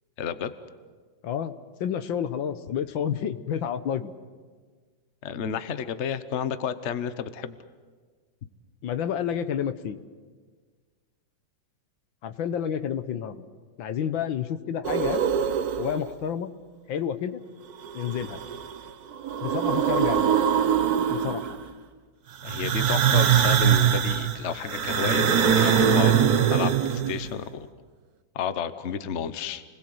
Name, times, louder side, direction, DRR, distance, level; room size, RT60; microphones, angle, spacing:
voice 1, 0.2-0.5 5.2-7.6 22.4-26.2 26.5-27.7 28.3-29.6, left 7 dB, 45° left, 12 dB, 1.1 m, -31 dB
voice 2, 1.8-4.1 8.8-10.0 12.2-13.4 13.8-15.2 15.8-16.5 16.9-17.4 17.9-18.4 19.4-20.3 21.1-21.5, left 8 dB, 80° left, 11 dB, 1.8 m, -29 dB
sound 1, 14.8-16.1 17.8-18.8 19.1-21.7 22.4-27.3, right 8 dB, 55° right, 1.4 m, -23 dB
29.5 x 20.5 x 7.9 m, 1.5 s
omnidirectional pair, 2.1 m